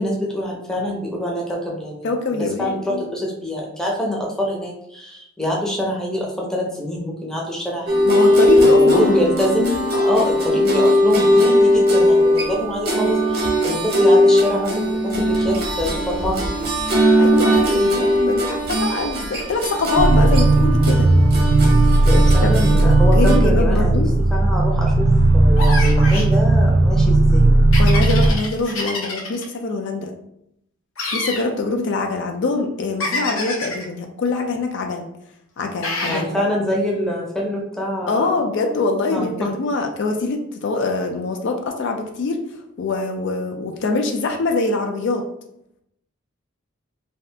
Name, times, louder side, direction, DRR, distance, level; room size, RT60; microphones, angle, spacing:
voice 1, 0.0-8.1 8.6-9.8 10.0-16.7 22.1-27.7 36.0-38.4 39.1-39.5, equal, 5° left, -3 dB, 0.6 m, -25 dB
voice 2, 2.0-3.0 8.1-9.2 9.9-10.1 10.5-10.7 17.2-21.1 22.4-22.5 23.1-24.1 27.8-30.1 31.1-35.1 35.6-36.3 38.1-42.4 42.8-45.2, left 3 dB, 60° left, 4 dB, 0.4 m, -23 dB
sound 1, 7.9-23.4, equal, 50° right, 0.8 m, -18 dB
sound 2, 20.0-28.3, right 2 dB, 70° right, 0.5 m, -15 dB
sound 3, 25.6-26.3 27.7-29.4 31.0-31.5 33.0-33.8 35.8-36.3, left 2 dB, 80° left, 0.8 m, -26 dB
2.7 x 2.4 x 3.3 m, 0.77 s
head